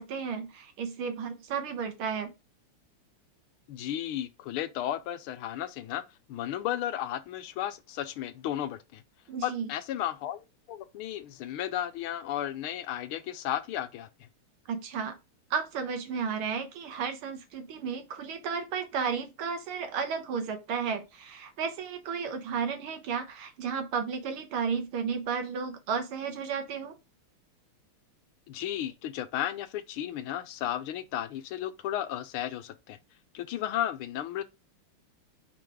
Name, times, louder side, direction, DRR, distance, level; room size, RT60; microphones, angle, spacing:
voice 1, 0.0-2.3 9.3-9.7 14.7-15.2 15.5-27.0, right 6 dB, 75° right, 1.9 m, -33 dB
voice 2, 3.7-6.0 6.3-9.0 9.4-14.3 28.5-33.0 33.3-34.4, left 12 dB, 80° left, 1.5 m, -34 dB
5.2 x 3.8 x 4.8 m
omnidirectional pair, 2.4 m